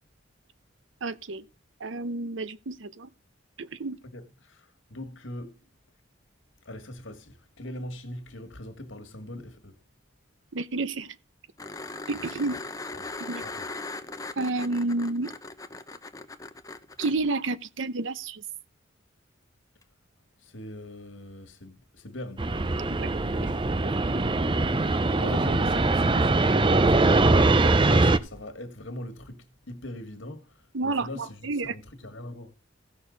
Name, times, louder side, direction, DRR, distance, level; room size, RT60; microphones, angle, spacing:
voice 1, 1.0-1.4 1.8-3.1 3.6-4.0 10.5-11.1 12.1-12.6 13.2-13.4 14.4-15.3 17.0-18.4 23.0-23.6 30.7-31.7, right 3 dB, 75° right, 0.8 m, -30 dB
voice 2, 4.0-5.6 6.6-9.8 12.2-12.6 12.9-13.1 13.4-13.7 20.4-22.5 25.2-32.5, left 1 dB, 75° left, 1.9 m, -41 dB
sound 1, 11.6-17.1 19.8-19.9, left 3 dB, 15° left, 0.8 m, -39 dB
Fixed-wing aircraft airplane, 22.4-28.2, right 2 dB, 25° right, 0.6 m, -22 dB
16.0 x 6.5 x 3.9 m
head